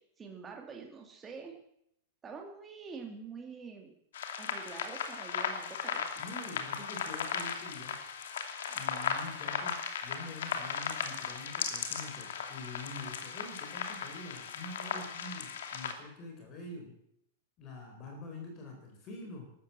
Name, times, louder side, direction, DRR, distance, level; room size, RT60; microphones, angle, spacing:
voice 1, 0.2-1.5 2.2-3.9 4.4-6.1, right 5 dB, 15° right, 2 dB, 2.6 m, -46 dB
sound 1, 4.1-15.9, left 7 dB, 75° left, 2.6 m, -37 dB
voice 2, 6.2-8.0 8.7-9.7 10.0-17.0 17.6-19.5, left 2 dB, 25° left, 2 dB, 4.3 m, -46 dB
13.5 x 13.0 x 7.6 m, 0.73 s
supercardioid pair, 165°, 0 cm